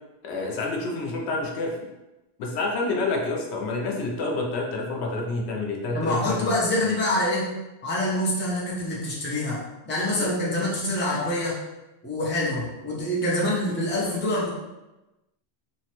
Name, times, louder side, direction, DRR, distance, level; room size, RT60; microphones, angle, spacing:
voice 1, 0.2-1.7 2.4-6.6 10.2-10.5, left 2 dB, 75° left, -1 dB, 0.8 m, -28 dB
voice 2, 5.9-7.5 7.8-11.6 12.0-14.5, left 1 dB, 15° left, -5 dB, 0.4 m, -26 dB
3.1 x 2.1 x 2.9 m, 1.0 s
omnidirectional pair, 1.1 m